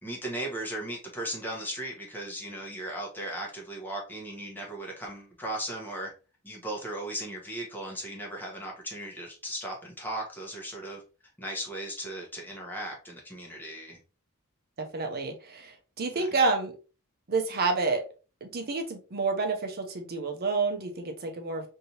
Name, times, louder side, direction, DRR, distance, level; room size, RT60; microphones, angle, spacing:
voice 1, 0.0-6.1 6.4-11.0 11.4-14.0 16.1-16.3, right 1 dB, 10° left, -1 dB, 1.0 m, -37 dB
voice 2, 14.8-16.7 17.3-18.0 18.4-21.7, right 3 dB, 45° right, 4 dB, 0.7 m, -29 dB
3.3 x 2.7 x 2.8 m, 0.34 s
head